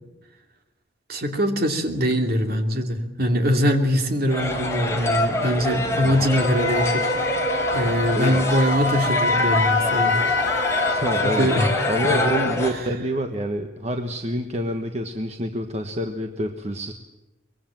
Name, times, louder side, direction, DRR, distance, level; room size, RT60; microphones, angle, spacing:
voice 1, 1.1-7.1 7.7-10.2 11.2-11.8 12.1-12.2, equal, 50° right, 4 dB, 2.8 m, -22 dB
sound 1, 4.3-12.7, left 2 dB, 15° left, 4.0 m, -25 dB
Wind instrument woodwind instrument, 6.3-12.7, left 2 dB, 80° left, 1.9 m, -26 dB
voice 2, 8.1-8.4 10.8-11.5 11.9-16.9, equal, 35° right, 5 dB, 1.4 m, -27 dB
24.0 x 21.5 x 7.6 m, 1.1 s
head